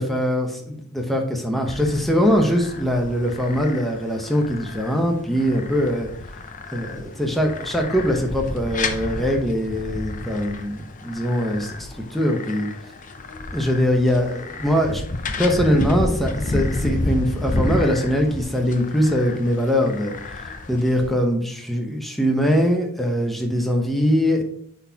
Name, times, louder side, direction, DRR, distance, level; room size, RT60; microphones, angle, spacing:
voice 1, 0.0-6.1 6.7-10.8 11.0-12.7 13.5-15.0 15.4-20.2 20.7-24.4, equal, ahead, 2 dB, 0.8 m, -22 dB
sound 1, 1.7-21.1, left 2 dB, 35° left, 0.6 m, -31 dB
9.6 x 4.1 x 2.8 m, 0.64 s
head